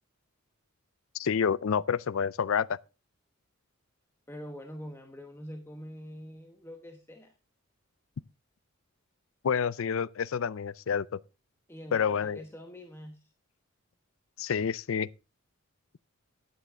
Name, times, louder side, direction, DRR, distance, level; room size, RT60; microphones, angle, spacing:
voice 1, 1.1-2.8 9.4-11.2 11.9-12.4 14.4-15.1, left 7 dB, 70° left, 0.4 m, -28 dB
voice 2, 4.3-7.3 11.7-13.3, equal, 10° left, 1.2 m, -45 dB
11.5 x 9.2 x 3.7 m
head